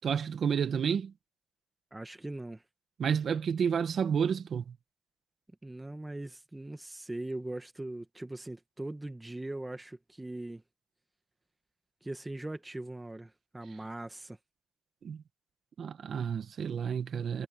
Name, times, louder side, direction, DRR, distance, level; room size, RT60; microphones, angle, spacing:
voice 1, 0.0-1.1 3.0-4.8 15.0-15.2 15.8-17.5, right 7 dB, 55° right, 1.9 m, -30 dB
voice 2, 1.9-2.6 5.6-10.6 12.0-14.4, right 2 dB, 15° right, 2.1 m, -40 dB
cardioid pair, 90°, 0 cm